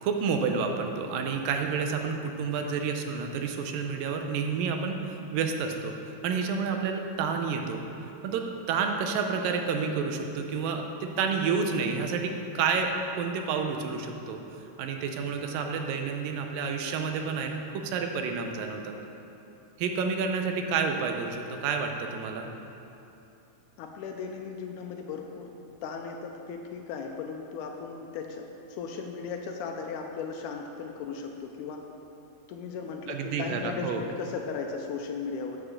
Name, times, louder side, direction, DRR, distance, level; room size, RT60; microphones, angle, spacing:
voice 1, 0.0-5.9 6.2-7.8 8.2-14.4 14.8-19.0 19.8-22.5 33.1-34.0, right 5 dB, 85° right, 4 dB, 2.4 m, -29 dB
voice 2, 23.8-25.5 25.8-31.8 32.5-35.6, left 5 dB, 80° left, 3 dB, 1.9 m, -36 dB
7.9 x 6.0 x 6.5 m, 2.9 s
omnidirectional pair, 3.9 m